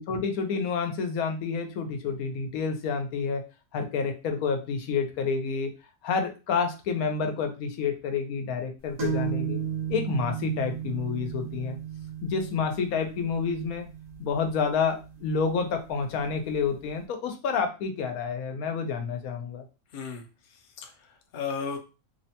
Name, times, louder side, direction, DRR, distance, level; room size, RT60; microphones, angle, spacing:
voice 1, 0.0-3.4 3.7-5.7 6.0-9.6 9.9-11.8 12.2-13.9 14.2-19.6, left 5 dB, 90° left, 5 dB, 1.1 m, -29 dB
sound 1, 9.0-16.5, right 7 dB, 65° right, 1.3 m, -35 dB
voice 2, 19.9-21.8, left 6 dB, 55° left, 4 dB, 0.5 m, -36 dB
3.1 x 2.1 x 2.7 m, 0.30 s
omnidirectional pair, 1.5 m